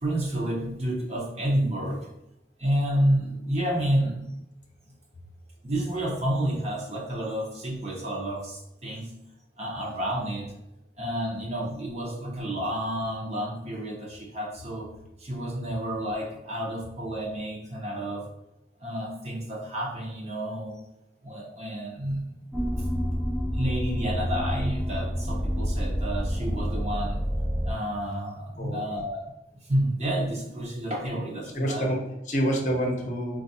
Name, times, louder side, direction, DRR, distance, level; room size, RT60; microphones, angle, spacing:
voice 1, 0.0-2.1 2.6-4.2 5.6-9.1 9.6-10.5 11.0-14.9 15.2-18.3 18.8-20.8 21.2-22.3 23.5-27.2 27.6-29.2 29.7-31.9, right 1 dB, 35° right, -2 dB, 0.8 m, -30 dB
sound 1, 22.5-27.7, equal, 5° right, 0.3 m, -28 dB
voice 2, 28.6-29.0 31.5-33.4, equal, 40° left, 1 dB, 0.7 m, -28 dB
4.4 x 2.4 x 2.7 m, 0.88 s
head